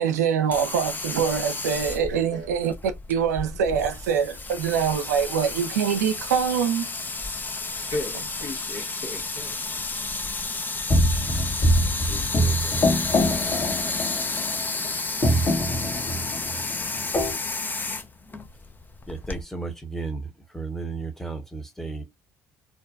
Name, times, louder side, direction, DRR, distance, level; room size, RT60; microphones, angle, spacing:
voice 1, 0.0-6.9, right 7 dB, 85° right, 0.4 m, -24 dB
sound 1, 0.5-19.4, left 3 dB, 20° left, 0.5 m, -31 dB
voice 2, 2.1-2.5 7.7-9.5 12.1-13.3, left 2 dB, 60° left, 1.0 m, -37 dB
sound 2, 10.9-14.9 15.2-17.3, equal, 35° left, 1.0 m, -24 dB
voice 3, 19.1-22.0, right 4 dB, 5° left, 0.9 m, -34 dB
2.5 x 2.2 x 2.3 m
hypercardioid pair, 55°, 8 cm